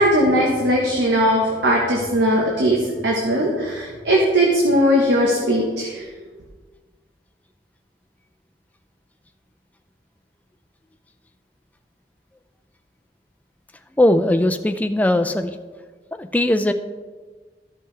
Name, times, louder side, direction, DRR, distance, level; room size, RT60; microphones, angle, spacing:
voice 1, 0.0-2.8 3.0-6.1, equal, 85° right, -1 dB, 1.2 m, -19 dB
voice 2, 14.0-15.6 16.2-16.7, left 1 dB, 10° left, 7 dB, 0.4 m, -19 dB
14.0 x 5.5 x 3.3 m, 1.4 s
head